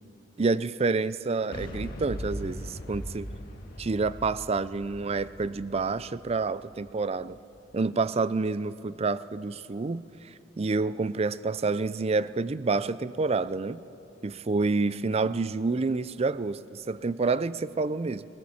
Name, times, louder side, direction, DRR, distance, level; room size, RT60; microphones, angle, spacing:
voice 1, 0.4-3.3 3.8-7.4 7.7-10.0 10.6-13.8 14.2-18.3, right 3 dB, 35° right, 16 dB, 0.4 m, -28 dB
Boom, 1.5-7.4, equal, 55° left, 1.8 m, -40 dB
21.5 x 20.5 x 7.2 m, 2.9 s
head